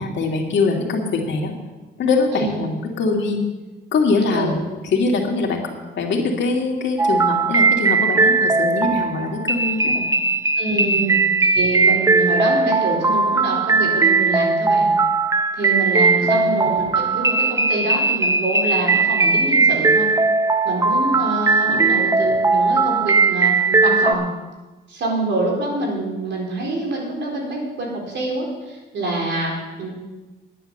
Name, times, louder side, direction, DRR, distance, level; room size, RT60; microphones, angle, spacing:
voice 1, 0.0-1.5 2.0-3.4 3.9-4.6 4.9-5.6 6.0-10.1 10.7-11.1 16.2-16.6 21.7-21.9, left 3 dB, 65° left, 1 dB, 2.3 m, -23 dB
voice 2, 2.3-2.6 4.3-4.6 10.6-14.9 15.6-20.1 20.6-24.3 24.9-29.9, right 2 dB, 65° right, -1 dB, 4.3 m, -26 dB
sound 1, 7.0-24.1, right 3 dB, 15° right, 0.6 m, -18 dB
10.5 x 9.9 x 6.5 m, 1.2 s
cardioid pair, 90°, 20 cm